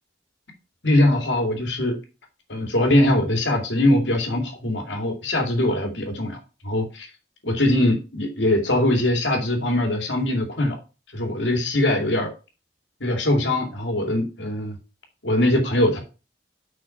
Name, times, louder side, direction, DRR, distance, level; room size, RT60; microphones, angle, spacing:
voice 1, 0.8-2.0 2.5-6.4 6.6-7.1 7.4-10.7 11.1-12.3 13.0-14.7 15.2-16.0, left 1 dB, 80° left, 3 dB, 2.4 m, -21 dB
6.1 x 5.8 x 5.7 m, 0.31 s
head